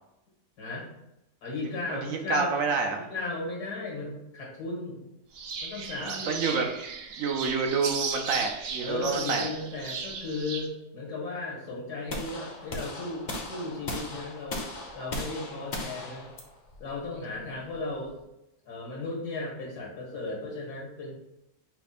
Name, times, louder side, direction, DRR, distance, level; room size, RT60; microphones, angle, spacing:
voice 1, 0.6-0.9 1.4-2.5 3.0-5.1 5.6-6.3 8.8-14.7 14.9-16.3 16.8-18.1 18.7-21.2, left 3 dB, 85° left, -3 dB, 2.2 m, -35 dB
voice 2, 2.0-3.1 6.0-9.5, right 4 dB, 65° right, 3 dB, 0.9 m, -29 dB
sound 1, 5.3-10.7, right 5 dB, 80° right, 0.5 m, -36 dB
sound 2, 12.1-18.2, left 2 dB, 45° left, 0.6 m, -38 dB
5.7 x 2.2 x 4.2 m, 0.88 s
omnidirectional pair, 1.7 m